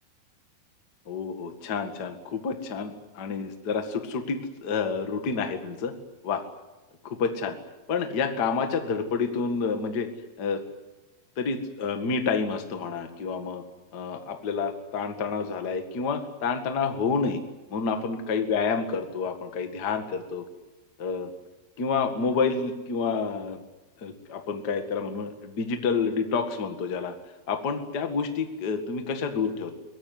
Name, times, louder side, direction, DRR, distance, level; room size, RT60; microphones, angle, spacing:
voice 1, 1.1-5.9 6.2-6.4 7.0-7.6 7.9-10.1 10.4-10.6 11.4-13.6 13.9-17.4 17.7-20.4 21.0-21.3 21.8-23.6 24.0-27.1 27.5-29.7, left 5 dB, 60° left, 6 dB, 1.0 m, -29 dB
23.0 x 19.0 x 9.6 m, 1.1 s
omnidirectional pair, 5.3 m